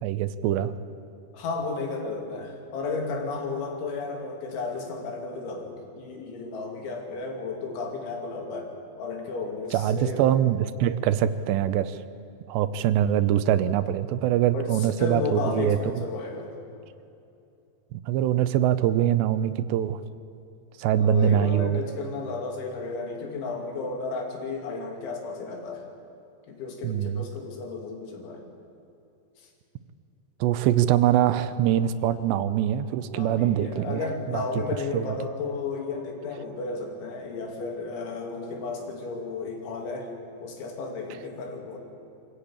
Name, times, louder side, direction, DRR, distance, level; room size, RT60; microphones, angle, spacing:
voice 1, 0.0-0.7 9.7-12.0 12.5-15.8 17.9-20.0 20.8-21.8 26.8-27.3 30.4-34.4 34.9-35.2, right 11 dB, 80° right, 13 dB, 2.7 m, -23 dB
voice 2, 1.3-8.7 9.0-10.2 14.5-16.5 21.0-25.9 26.5-28.4 33.1-40.1 40.4-41.8, left 4 dB, 85° left, 1 dB, 5.1 m, -33 dB
25.0 x 15.0 x 8.8 m, 2.6 s
omnidirectional pair, 5.2 m